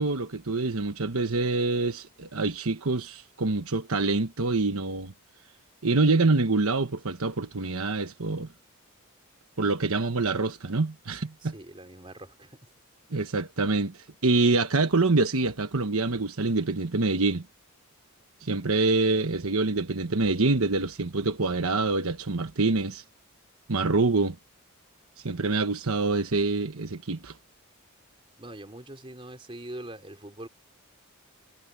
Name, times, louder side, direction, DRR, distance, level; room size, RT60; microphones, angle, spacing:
voice 1, 0.0-5.1 5.8-8.5 9.6-11.5 13.1-17.4 18.4-23.0 23.7-24.4 25.2-27.3, right 3 dB, 70° right, 1.2 m, -26 dB
voice 2, 11.4-12.7 28.4-30.5, right 1 dB, 25° right, 3.5 m, -43 dB
head